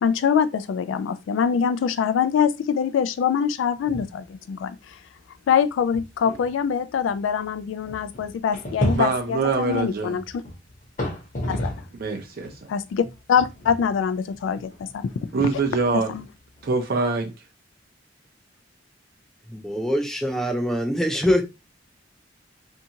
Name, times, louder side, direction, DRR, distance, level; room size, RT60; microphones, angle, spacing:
voice 1, 0.0-5.0 5.5-10.2 11.5-11.7 12.7-15.1 15.9-16.2, left 7 dB, 80° left, 0.3 m, -24 dB
sound 1, 3.8-4.3 4.6-4.7 5.3-5.4 5.9-12.0 12.4-16.7, equal, 45° left, 0.9 m, -33 dB
voice 2, 8.9-10.2 12.0-12.5 15.3-16.1 16.6-17.3, right 4 dB, 55° right, 0.6 m, -24 dB
voice 3, 19.5-21.4, equal, 5° left, 0.4 m, -23 dB
2.7 x 2.3 x 2.8 m
head